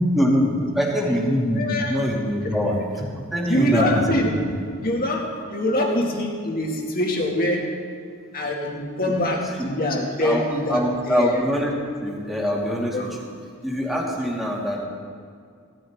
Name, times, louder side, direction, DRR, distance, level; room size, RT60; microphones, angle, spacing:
voice 1, 0.1-4.1 9.1-9.2 9.6-9.7 10.2-11.7 12.0-13.0 13.6-14.9, equal, ahead, -4 dB, 2.4 m, -23 dB
voice 2, 1.5-2.0 3.5-4.3 4.8-7.7 8.3-10.8 11.1-11.4 12.9-13.1, left 1 dB, 45° left, 0 dB, 2.1 m, -24 dB
18.0 x 13.5 x 3.6 m, 2.3 s
head